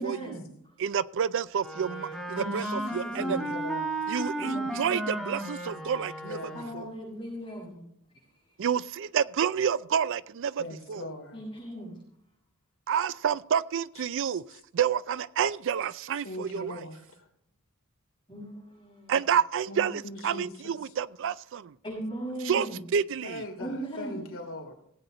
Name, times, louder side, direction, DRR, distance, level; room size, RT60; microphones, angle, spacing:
voice 1, 0.0-0.8 2.4-3.6 4.3-4.8 6.5-7.9 11.3-12.0 18.3-19.1 21.8-22.8 23.6-24.2, right 1 dB, 20° left, 6.1 m, -38 dB
voice 2, 0.8-3.5 4.1-6.4 6.7-6.9 8.6-10.6 10.9-11.0 12.9-14.4 14.7-16.8 19.1-21.7 22.4-22.7 22.9-23.4, right 7 dB, 60° right, 0.4 m, -29 dB
Wind instrument woodwind instrument, 1.6-6.9, right 1 dB, ahead, 1.9 m, -34 dB
voice 3, 3.2-3.9 6.2-6.7 10.6-11.4 14.2-14.6 16.2-17.3 19.7-20.9 23.2-24.7, left 1 dB, 65° left, 3.0 m, -40 dB
17.0 x 8.3 x 3.9 m
head